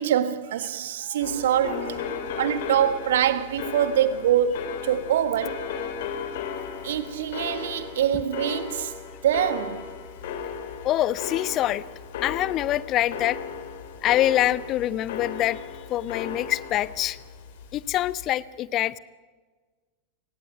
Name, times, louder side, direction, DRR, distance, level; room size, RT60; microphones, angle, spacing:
voice 1, 0.0-5.7 6.8-8.9 9.2-9.9, right 10 dB, 60° right, 1.6 m, -25 dB
sound 1, 1.2-18.3, left 7 dB, 55° left, 3.1 m, -36 dB
voice 2, 10.8-11.8 12.2-13.4 14.0-15.6 15.9-17.2 17.7-19.0, left 13 dB, 35° left, 0.7 m, -25 dB
30.0 x 18.0 x 9.2 m
figure-of-eight pair, 90°, 0 cm